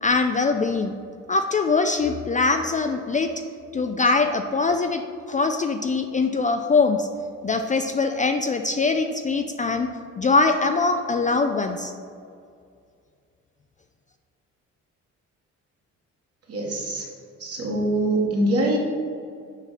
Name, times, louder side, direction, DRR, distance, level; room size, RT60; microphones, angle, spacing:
voice 1, 0.0-0.9 1.3-3.3 3.7-5.0 5.3-7.1 7.4-9.9 10.2-11.9, left 3 dB, 25° left, 6 dB, 0.3 m, -22 dB
voice 2, 16.5-17.0 17.4-18.8, right 1 dB, 50° right, -1 dB, 1.7 m, -23 dB
7.2 x 5.2 x 4.1 m, 2.3 s
cardioid pair, 90°, 30 cm